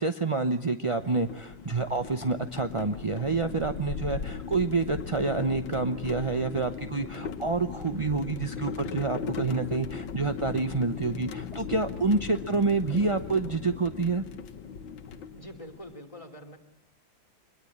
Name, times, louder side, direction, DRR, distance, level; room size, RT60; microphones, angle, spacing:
voice 1, 0.0-14.2, right 3 dB, 35° right, 6 dB, 0.4 m, -28 dB
sound 1, 0.9-15.9, left 6 dB, 85° left, 1.9 m, -38 dB
voice 2, 15.3-16.6, left 1 dB, 15° left, 2 dB, 2.9 m, -45 dB
24.5 x 21.5 x 8.7 m, 0.92 s
omnidirectional pair, 2.1 m